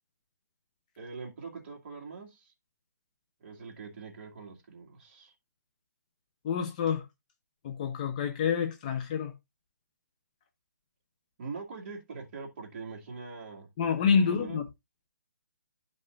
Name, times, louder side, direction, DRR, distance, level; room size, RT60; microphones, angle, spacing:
voice 1, 1.0-2.5 3.4-5.3 11.4-13.7 14.1-14.6, right 4 dB, 35° right, 2.0 m, -43 dB
voice 2, 6.4-7.0 7.6-9.3 13.8-14.6, left 6 dB, 25° left, 0.6 m, -27 dB
11.5 x 5.5 x 2.5 m
hypercardioid pair, 165°, 10 cm